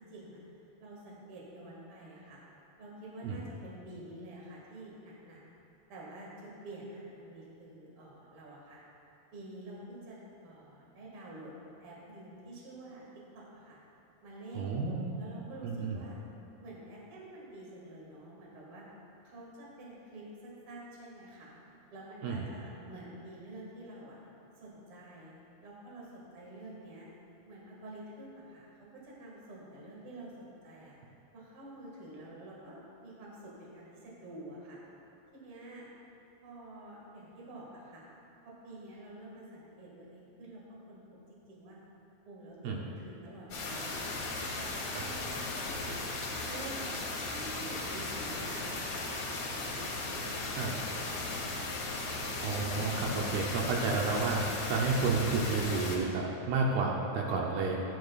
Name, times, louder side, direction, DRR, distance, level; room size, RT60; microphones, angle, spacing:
voice 1, 0.1-0.4 0.8-2.4 2.8-5.4 5.9-8.8 9.3-10.2 10.4-11.5 11.8-13.0 13.3-13.8 14.2-14.8 15.2-16.2 16.6-18.8 19.2-21.6 21.9-24.2 24.6-25.3 25.6-27.1 27.4-28.7 28.9-31.0 31.3-34.8 35.3-35.9 36.4-38.0 38.4-41.0 41.3-41.8 42.3-44.0 44.3-45.9 46.5-47.0 47.2-51.4, right 1 dB, 45° right, -4 dB, 2.2 m, -48 dB
voice 2, 14.6-15.0 15.6-16.0 22.2-22.4 42.6-42.8 44.9-45.0 50.6-50.7 52.4-54.4 54.7-57.8, right 4 dB, 80° right, -1 dB, 2.7 m, -31 dB
sound 1, 43.5-56.0, left 2 dB, 55° left, 2.2 m, -36 dB
13.5 x 10.0 x 2.4 m, 2.8 s
omnidirectional pair, 4.6 m